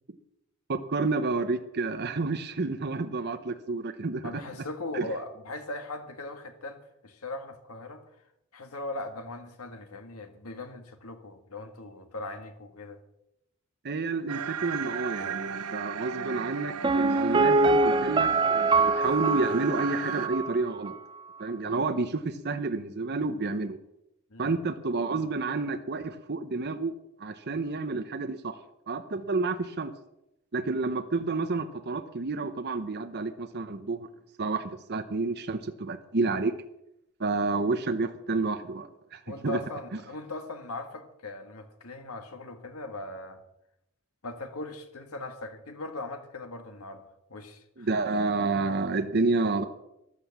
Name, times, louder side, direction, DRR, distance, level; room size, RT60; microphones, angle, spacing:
voice 1, 0.7-4.4 4.9-5.1 13.8-20.9 21.4-23.8 24.4-28.6 28.9-29.9 30.5-34.1 34.4-36.5 37.2-39.6 47.8-49.6, right 3 dB, 50° right, 8 dB, 0.8 m, -30 dB
voice 2, 4.2-8.0 8.5-13.0 24.3-24.6 39.3-43.4 44.2-47.9, left 2 dB, 75° left, 7 dB, 1.8 m, -39 dB
sound 1, 14.3-20.3, right 7 dB, 85° right, 0.7 m, -36 dB
Piano, 16.8-20.6 20.9-21.0, right 3 dB, 20° right, 0.5 m, -24 dB
13.5 x 11.5 x 7.2 m, 0.85 s
head